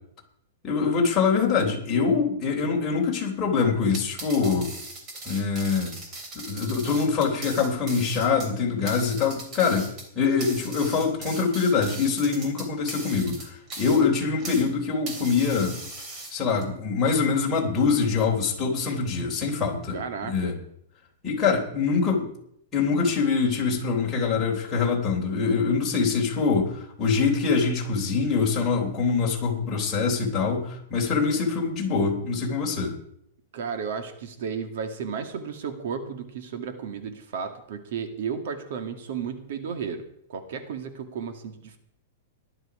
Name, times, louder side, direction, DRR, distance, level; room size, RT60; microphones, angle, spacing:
voice 1, 0.6-4.7 5.2-5.9 6.3-9.9 10.1-15.7 16.3-20.0 20.2-20.5 21.2-22.3 22.7-32.9, left 5 dB, 15° left, -2 dB, 3.5 m, -24 dB
sound 1, 3.8-14.7 15.1-16.6, right 2 dB, 20° right, 3.1 m, -39 dB
voice 2, 19.9-20.5 33.5-40.0 40.3-41.8, right 6 dB, 55° right, 7 dB, 2.0 m, -33 dB
18.5 x 11.5 x 4.9 m, 0.72 s
supercardioid pair, 170°, 0 cm